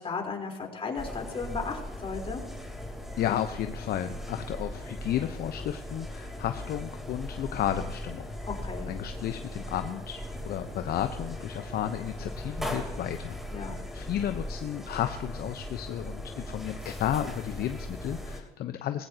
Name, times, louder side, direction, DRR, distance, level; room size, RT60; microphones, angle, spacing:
voice 1, 0.0-2.4 8.5-8.9 13.5-13.8, left 4 dB, 30° left, 1 dB, 4.0 m, -35 dB
sound 1, 1.0-18.4, left 1 dB, ahead, 3.4 m, -39 dB
voice 2, 3.2-8.3 8.9-19.1, left 11 dB, 50° left, 8 dB, 0.9 m, -33 dB
19.0 x 16.5 x 2.9 m, 1.0 s
hypercardioid pair, 80°, 20 cm